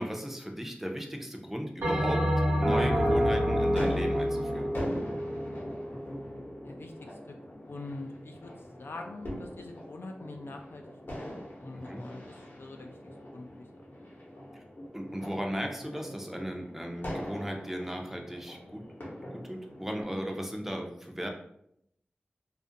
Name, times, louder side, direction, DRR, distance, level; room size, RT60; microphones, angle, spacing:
voice 1, 0.0-2.2 2.6-4.7 11.9-12.0 14.5-14.6 14.9-18.8 19.3-21.3, equal, 10° right, 2 dB, 0.4 m, -36 dB
Bell, 1.8-6.4, equal, 75° right, 0.8 m, -28 dB
sound 1, 2.0-20.0, equal, 65° left, 0.8 m, -42 dB
voice 2, 6.6-7.4 7.7-8.5 8.8-10.8 11.2-14.0, left 2 dB, 80° left, 3 dB, 0.3 m, -44 dB
2.4 x 2.1 x 2.6 m, 0.74 s
wide cardioid pair, 65°, 4 cm